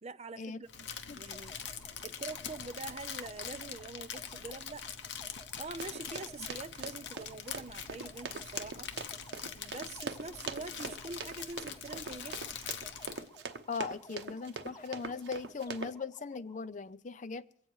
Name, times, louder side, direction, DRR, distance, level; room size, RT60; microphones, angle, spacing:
voice 1, 0.0-0.9 1.1-1.6 2.0-4.8 5.6-8.9 9.5-12.4, right 3 dB, 35° right, 0.5 m, -44 dB
Crumpling crinkling, 0.7-13.3, left 8 dB, 90° left, 0.9 m, -43 dB
sound 1, 1.3-16.7, left 1 dB, 20° left, 0.9 m, -57 dB
Run, 5.8-15.9, right 4 dB, 75° right, 0.9 m, -43 dB
voice 2, 13.7-17.4, left 4 dB, 45° left, 0.5 m, -39 dB
23.0 x 8.5 x 4.7 m
head